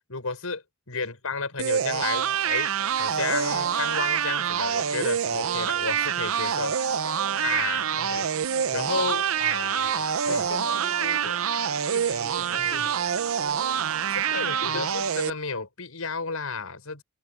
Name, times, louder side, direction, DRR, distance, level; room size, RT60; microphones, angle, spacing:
voice 1, 0.1-2.7 2.9-6.8 7.4-8.0 8.7-9.2 10.3-10.4 14.1-17.0, left 4 dB, 85° left, 5.2 m, -32 dB
sound 1, 1.6-15.3, right 8 dB, 75° right, 0.6 m, -26 dB
voice 2, 8.0-8.3 8.9-9.1 9.4-11.4 11.9-13.0 14.3-14.8, left 3 dB, 70° left, 4.0 m, -39 dB
head